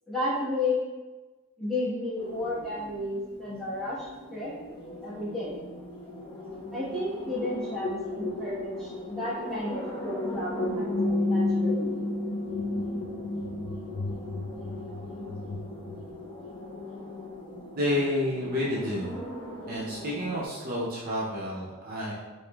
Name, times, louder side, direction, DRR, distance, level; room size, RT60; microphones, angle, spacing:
voice 1, 0.1-0.8 1.6-4.5 5.0-5.6 6.7-11.9, left 2 dB, ahead, -10 dB, 1.1 m, -32 dB
sound 1, 2.2-20.5, left 1 dB, 25° left, 0.8 m, -42 dB
sound 2, 6.5-16.1, left 2 dB, 70° left, 0.5 m, -32 dB
voice 2, 17.7-19.2 19.7-22.1, left 1 dB, 45° right, -5 dB, 0.6 m, -30 dB
4.8 x 3.0 x 2.3 m, 1.2 s
head